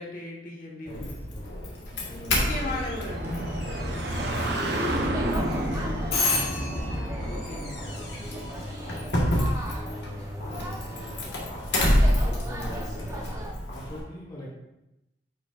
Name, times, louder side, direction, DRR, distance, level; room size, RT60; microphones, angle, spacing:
voice 1, 0.0-1.1 2.1-3.4 7.2-7.8 12.3-12.4, left 2 dB, 50° left, -3 dB, 1.4 m, -37 dB
voice 2, 0.8-1.5 2.1-2.4 3.8-6.6 7.8-11.5 12.0-13.3 13.7-14.5, equal, 25° left, -5 dB, 1.1 m, -42 dB
Doorbell, 0.9-14.0, left 1 dB, 80° left, 1.5 m, -29 dB
sound 1, 2.2-8.8, right 1 dB, 65° right, 0.8 m, -31 dB
sound 2, 5.1-13.5, right 1 dB, 20° right, 0.9 m, -40 dB
8.9 x 4.9 x 2.5 m, 0.92 s
head